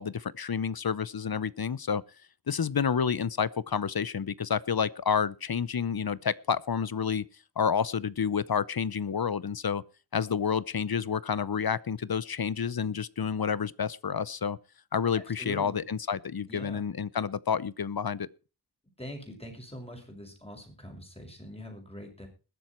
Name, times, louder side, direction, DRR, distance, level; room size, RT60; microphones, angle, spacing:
voice 1, 0.0-2.0 2.5-7.2 7.6-9.8 10.1-14.6 14.9-18.3, left 7 dB, 60° left, 0.7 m, -29 dB
voice 2, 15.1-15.8 16.5-16.8 19.0-22.3, equal, 15° left, 5.8 m, -43 dB
21.0 x 7.6 x 4.4 m
wide cardioid pair, 50°, 42 cm